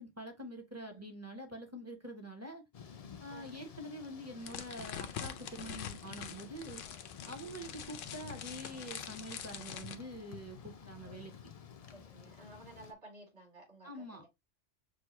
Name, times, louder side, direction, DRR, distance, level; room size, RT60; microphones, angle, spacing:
voice 1, 0.0-2.6 3.2-6.8 7.3-11.3 13.8-14.2, right 1 dB, 15° right, 0.7 m, -46 dB
Thunder / Rain, 2.7-12.9, left 7 dB, 60° left, 0.4 m, -52 dB
sound 1, 4.4-9.9, left 9 dB, 90° left, 1.0 m, -45 dB
voice 2, 11.0-11.4 11.9-14.3, right 2 dB, 55° right, 3.5 m, -56 dB
6.3 x 2.3 x 2.9 m
omnidirectional pair, 1.2 m